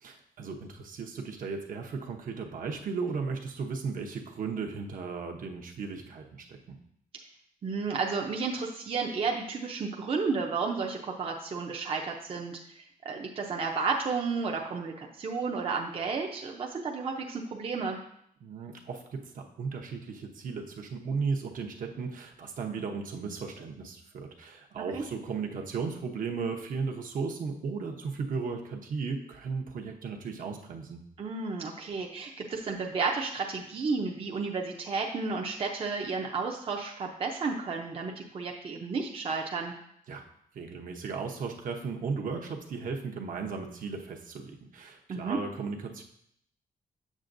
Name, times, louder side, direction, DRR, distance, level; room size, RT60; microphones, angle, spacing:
voice 1, 0.0-6.8 18.4-31.0 40.1-40.2 40.5-46.0, right 5 dB, 65° right, 2 dB, 0.9 m, -36 dB
voice 2, 7.6-18.0 24.8-25.0 31.2-39.7 45.1-45.4, right 4 dB, 40° right, 0 dB, 0.6 m, -32 dB
7.4 x 7.3 x 2.6 m, 0.71 s
wide cardioid pair, 155°, 15 cm